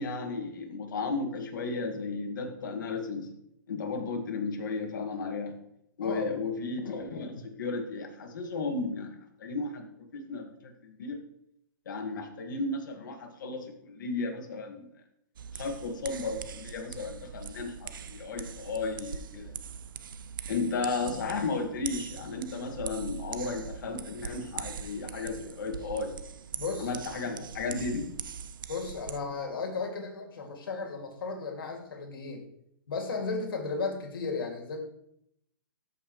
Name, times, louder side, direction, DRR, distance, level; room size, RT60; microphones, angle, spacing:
voice 1, 0.0-3.3 3.7-5.5 6.0-9.8 10.1-11.2 11.8-14.9 15.5-19.5 20.5-26.1 26.8-28.1, left 3 dB, 60° left, 3 dB, 1.8 m, -34 dB
voice 2, 6.0-6.4 26.5-26.9 28.7-32.4 32.9-34.8, left 4 dB, 85° left, 2 dB, 2.3 m, -35 dB
sound 1, 15.4-29.2, right 7 dB, 70° right, 0.6 m, -42 dB
13.0 x 5.5 x 3.1 m, 0.75 s
hypercardioid pair, 175°, 11 cm